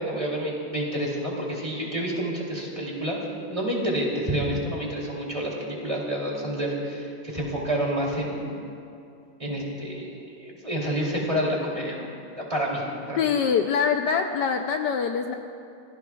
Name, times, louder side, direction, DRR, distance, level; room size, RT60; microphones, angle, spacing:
voice 1, 0.1-8.6 9.4-12.1 12.4-13.2, equal, 15° right, -3 dB, 2.9 m, -29 dB
voice 2, 13.2-15.3, left 6 dB, 70° left, 4 dB, 1.2 m, -24 dB
28.5 x 17.5 x 2.4 m, 2.5 s
omnidirectional pair, 2.1 m